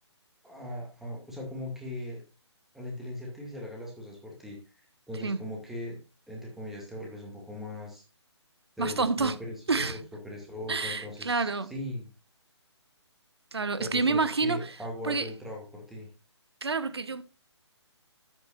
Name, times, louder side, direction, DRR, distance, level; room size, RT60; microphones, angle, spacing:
voice 1, 0.4-2.2 2.7-4.6 5.1-6.0 6.3-8.0 8.8-12.1 13.8-16.1, left 1 dB, ahead, 2.3 m, -39 dB
voice 2, 8.8-9.4 9.7-10.0 10.7-11.7 13.5-14.6 15.0-15.3 16.6-17.2, right 4 dB, 60° right, 1.0 m, -28 dB
12.0 x 8.5 x 2.5 m
figure-of-eight pair, 140°, 15 cm